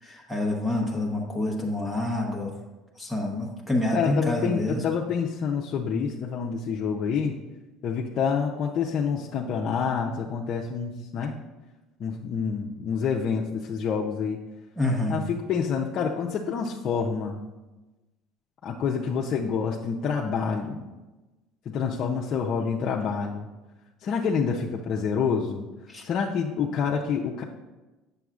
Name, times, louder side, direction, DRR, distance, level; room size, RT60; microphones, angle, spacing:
voice 1, 0.0-2.5 3.0-4.8 14.8-15.2 25.9-26.0, left 1 dB, ahead, -4 dB, 1.0 m, -27 dB
voice 2, 3.9-7.4 7.8-11.3 12.0-14.4 15.1-17.5 18.6-20.8 21.7-23.5 24.0-25.7 26.0-27.4, left 6 dB, 50° left, -3 dB, 0.6 m, -27 dB
7.8 x 6.9 x 2.5 m, 1.1 s
supercardioid pair, 100°, 0 cm